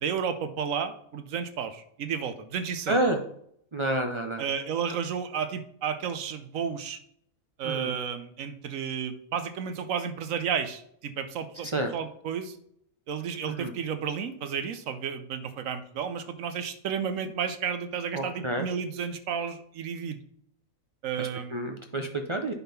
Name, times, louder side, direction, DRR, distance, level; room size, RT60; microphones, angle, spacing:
voice 1, 0.0-3.0 4.4-7.0 7.6-12.6 13.1-20.2 21.0-21.6, right 7 dB, 75° right, 10 dB, 1.1 m, -32 dB
voice 2, 2.9-3.2 3.7-4.5 7.6-7.9 11.6-11.9 13.5-13.7 18.1-18.7 21.2-22.5, right 1 dB, 40° right, 4 dB, 0.4 m, -29 dB
9.6 x 3.7 x 5.7 m, 0.68 s
omnidirectional pair, 1.5 m